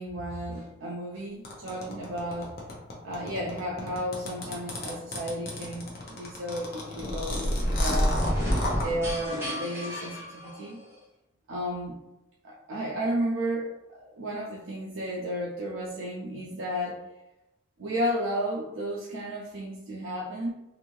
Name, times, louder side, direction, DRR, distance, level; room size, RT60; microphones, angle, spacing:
voice 1, 0.0-2.5 3.0-8.2 8.8-10.8 11.5-12.0 12.4-17.0 17.8-20.5, equal, 75° right, -3 dB, 0.5 m, -33 dB
sound 1, 1.4-8.9, left 2 dB, 50° left, 0.6 m, -35 dB
sound 2, 6.9-10.9, equal, 10° right, 0.8 m, -29 dB
2.6 x 2.6 x 3.0 m, 0.93 s
head